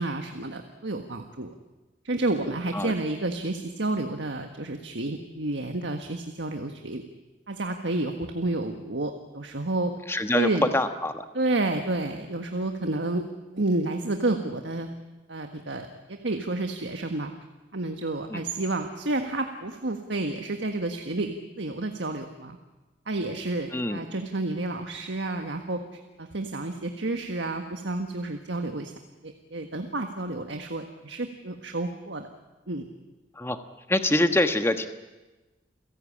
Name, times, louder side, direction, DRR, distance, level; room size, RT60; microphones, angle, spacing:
voice 1, 0.0-1.5 2.0-7.0 7.5-9.9 10.3-10.7 11.3-13.2 13.5-14.9 15.3-17.3 17.7-22.6 23.1-25.8 26.2-28.9 29.2-32.3 32.7-32.9, right 2 dB, 85° right, 5 dB, 1.6 m, -30 dB
voice 2, 10.1-11.2 18.3-18.4 23.7-24.0 33.4-33.6 33.9-34.9, left 1 dB, 15° left, 8 dB, 1.3 m, -24 dB
29.0 x 16.5 x 8.7 m, 1.1 s
head